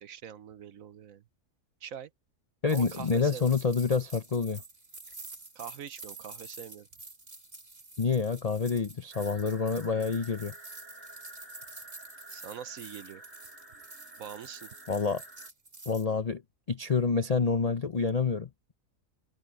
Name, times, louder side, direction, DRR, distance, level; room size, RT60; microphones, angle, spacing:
voice 1, 0.0-1.2 1.8-2.1 2.7-3.5 5.5-6.9 12.3-13.2 14.2-14.7, right 8 dB, 60° right, 1.2 m, -43 dB
voice 2, 2.6-4.6 8.0-10.5 14.9-15.2 15.9-16.4 16.7-18.7, left 5 dB, 45° left, 0.5 m, -28 dB
sound 1, 2.7-16.1, right 3 dB, 35° right, 3.8 m, -48 dB
sound 2, 9.1-15.5, right 1 dB, 10° right, 1.9 m, -51 dB
omnidirectional pair, 1.7 m